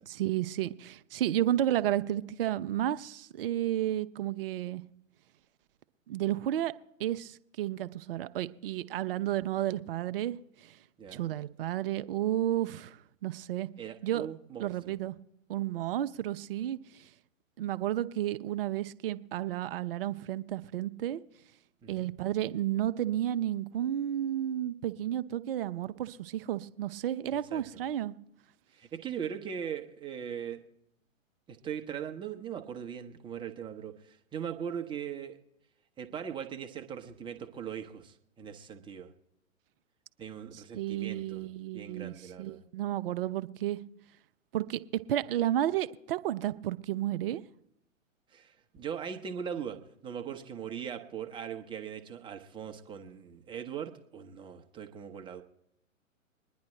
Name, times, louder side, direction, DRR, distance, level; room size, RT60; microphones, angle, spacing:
voice 1, 0.1-4.8 6.1-6.7 7.0-10.8 11.1-13.7 14.0-14.3 14.6-15.1 15.5-17.1 17.6-21.2 21.9-28.1 40.5-43.8 44.5-44.8 45.1-47.4, right 12 dB, 45° right, 0.7 m, -32 dB
voice 2, 13.8-14.7 21.8-22.1 27.3-27.6 28.7-30.6 31.5-35.4 36.0-39.1 40.2-41.5 41.7-42.6 48.3-49.8 50.0-55.4, right 8 dB, 10° right, 0.9 m, -40 dB
23.0 x 10.5 x 3.2 m
figure-of-eight pair, 120°, 41 cm